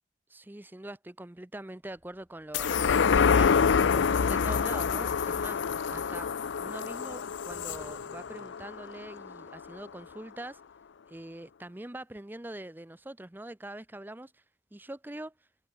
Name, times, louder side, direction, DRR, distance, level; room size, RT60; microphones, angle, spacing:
voice 1, 0.3-5.6 5.9-10.6 11.1-14.4 14.7-15.5, right 1 dB, 10° right, 0.6 m, -43 dB
Train, 1.8-10.2, equal, 5° left, 6.1 m, -64 dB
sound 1, 2.5-9.3 9.8-9.9, left 6 dB, 70° left, 0.5 m, -27 dB
sound 2, 3.4-8.6, equal, 25° left, 7.0 m, -61 dB
head